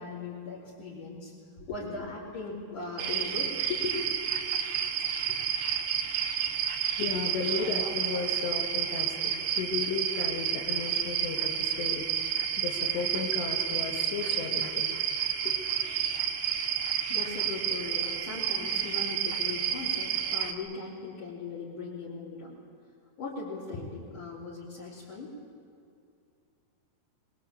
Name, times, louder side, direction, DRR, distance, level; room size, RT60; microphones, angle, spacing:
voice 1, 0.0-4.4 5.3-5.4 7.5-7.6 16.8-22.6 23.2-25.3, left 4 dB, 45° left, -7 dB, 5.3 m, -39 dB
sound 1, 3.0-20.5, right 9 dB, 70° right, 3.5 m, -30 dB
voice 2, 7.0-14.9, left 5 dB, 75° left, 2 dB, 3.8 m, -34 dB
24.5 x 21.5 x 8.7 m, 2.5 s
omnidirectional pair, 5.2 m